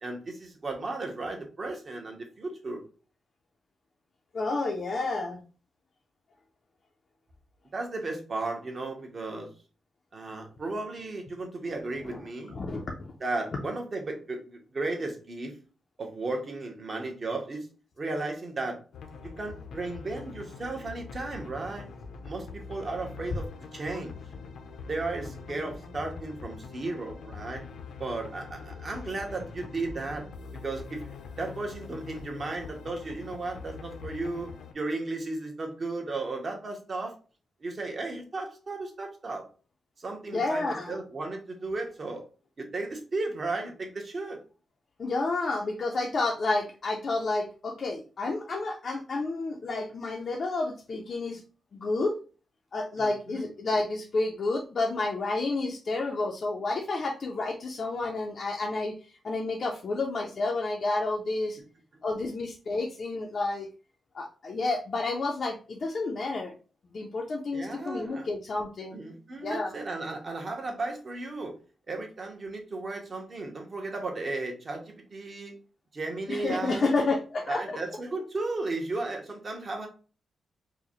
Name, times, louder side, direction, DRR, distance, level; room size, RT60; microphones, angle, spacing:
voice 1, 0.0-2.8 7.7-9.5 10.1-12.6 13.2-15.6 16.0-17.7 18.0-18.8 19.2-21.9 22.2-24.2 24.8-27.6 28.0-30.3 30.6-37.2 37.6-39.4 40.0-42.2 42.6-44.4 53.0-53.5 67.5-68.3 68.9-71.5 71.9-75.5 75.9-76.9 77.5-79.9, right 3 dB, 30° right, 3 dB, 0.8 m, -35 dB
voice 2, 4.3-5.4 12.0-12.2 12.5-12.9 40.3-41.0 45.0-51.4 51.7-52.2 52.7-58.9 59.2-61.6 62.0-63.7 64.1-66.5 66.9-69.0 69.4-69.7 76.3-77.8, left 3 dB, 40° left, 0 dB, 0.5 m, -30 dB
sound 1, 18.9-34.7, left 5 dB, 80° left, 0.6 m, -43 dB
4.7 x 2.1 x 2.9 m, 0.36 s
wide cardioid pair, 170°, 0 cm